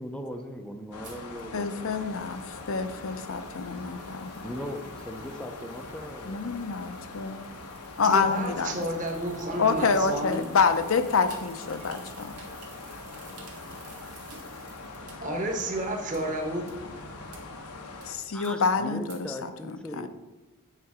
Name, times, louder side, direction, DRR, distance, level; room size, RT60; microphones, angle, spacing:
voice 1, 0.0-2.0 4.4-6.6 11.8-12.3 18.3-20.1, equal, 5° left, 5 dB, 0.5 m, -39 dB
sound 1, 0.9-18.1, left 3 dB, 85° left, 0.9 m, -42 dB
sound 2, 1.0-15.1 15.6-15.7 16.1-16.2 16.7-16.8 17.3-17.4 18.0-18.1 18.4-18.5 19.1-19.2, right 6 dB, 90° right, 1.8 m, -54 dB
voice 2, 1.5-4.4 6.2-7.5 8.0-8.8 9.6-12.4 18.1-20.1, left 5 dB, 60° left, 10 dB, 0.6 m, -27 dB
voice 3, 8.0-10.4 15.0-16.7, right 1 dB, 35° right, 2 dB, 1.1 m, -31 dB
8.9 x 4.6 x 4.8 m, 1.1 s
head